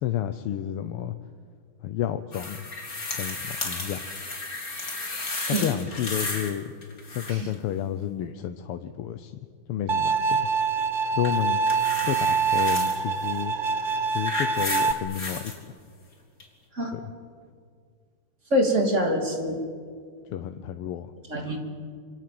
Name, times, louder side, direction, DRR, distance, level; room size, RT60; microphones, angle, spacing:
voice 1, 0.0-1.2 1.8-2.7 3.2-4.0 5.6-6.7 7.1-9.3 9.7-10.5 11.1-11.6 12.0-13.5 14.1-15.4 16.9-17.1 20.3-21.1, left 11 dB, 85° left, 9 dB, 1.8 m, -30 dB
sound 1, 2.3-6.6 6.8-7.5 11.2-13.0 13.8-15.6 16.4-16.5, left 2 dB, 40° left, 3.6 m, -33 dB
Bowed string instrument, 9.9-14.9, right 5 dB, 65° right, 0.5 m, -25 dB
voice 2, 18.5-19.6 21.3-21.6, equal, 30° right, 3 dB, 3.2 m, -24 dB
27.0 x 25.5 x 7.8 m, 2.1 s
omnidirectional pair, 2.4 m